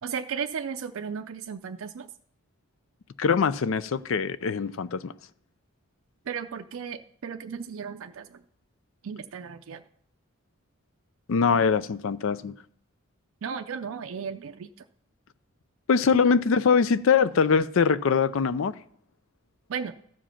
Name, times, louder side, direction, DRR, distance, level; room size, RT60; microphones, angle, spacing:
voice 1, 0.0-2.1 6.3-8.4 9.0-9.8 13.4-14.7 19.7-19.9, right 6 dB, 70° right, 0.4 m, -35 dB
voice 2, 3.2-5.1 11.3-12.5 15.9-18.8, left 5 dB, 65° left, 0.4 m, -23 dB
13.5 x 5.1 x 5.7 m
head